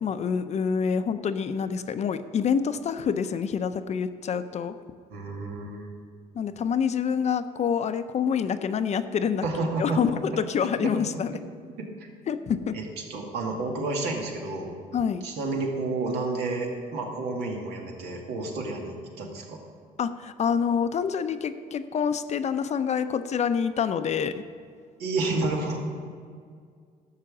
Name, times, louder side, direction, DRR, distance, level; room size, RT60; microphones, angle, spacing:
voice 1, 0.0-4.8 6.3-9.5 9.8-11.3 12.3-12.8 14.9-15.3 20.0-24.4, left 7 dB, 40° left, 11 dB, 0.6 m, -27 dB
voice 2, 5.1-5.9 9.4-10.0 10.8-11.1 12.7-14.7 15.2-19.6 25.0-25.8, right 3 dB, 85° right, 0 dB, 2.2 m, -30 dB
12.5 x 5.8 x 7.2 m, 2.1 s
cardioid pair, 110°, 17 cm